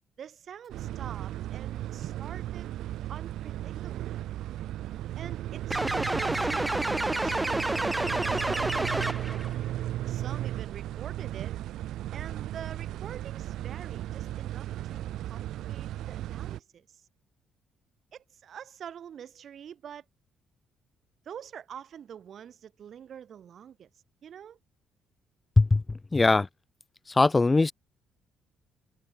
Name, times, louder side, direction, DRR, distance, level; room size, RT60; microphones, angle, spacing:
voice 1, 0.2-2.8 3.1-4.2 5.2-9.2 10.1-11.6 12.1-17.1 18.1-20.0 21.3-23.9 24.2-24.6, right 8 dB, 55° right, 5.6 m, -46 dB
sound 1, 0.7-16.6, right 13 dB, 80° right, 1.2 m, -35 dB
sound 2, 5.7-9.5, right 2 dB, 10° right, 2.1 m, -29 dB
voice 2, 25.6-26.5 27.1-27.7, left 3 dB, 20° left, 0.6 m, -21 dB
cardioid pair, 115°, 0 cm